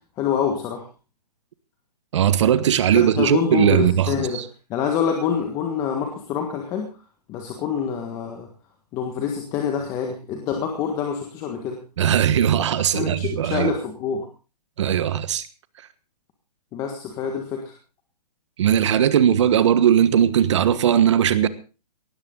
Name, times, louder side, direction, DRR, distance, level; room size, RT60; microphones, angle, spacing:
voice 1, 0.2-0.9 2.9-4.4 4.7-6.9 7.3-8.5 8.9-11.8 12.9-14.3 16.7-17.7, left 7 dB, 15° left, 1.6 m, -26 dB
voice 2, 2.1-4.4 12.0-13.7 14.8-15.5 18.6-21.5, right 9 dB, 45° right, 1.4 m, -19 dB
18.5 x 13.5 x 3.9 m
hypercardioid pair, 165°, 21 cm